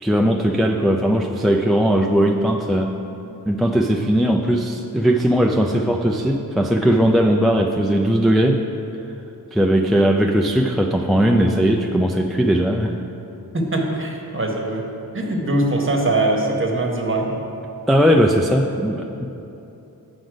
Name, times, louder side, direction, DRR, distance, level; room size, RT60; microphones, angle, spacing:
voice 1, 0.0-2.9 3.5-8.6 9.5-13.0 17.9-19.2, equal, ahead, 1 dB, 0.3 m, -18 dB
voice 2, 13.5-14.8 15.1-17.3, right 2 dB, 35° right, 1 dB, 1.1 m, -22 dB
7.7 x 5.3 x 4.9 m, 2.9 s
wide cardioid pair, 75°, 38 cm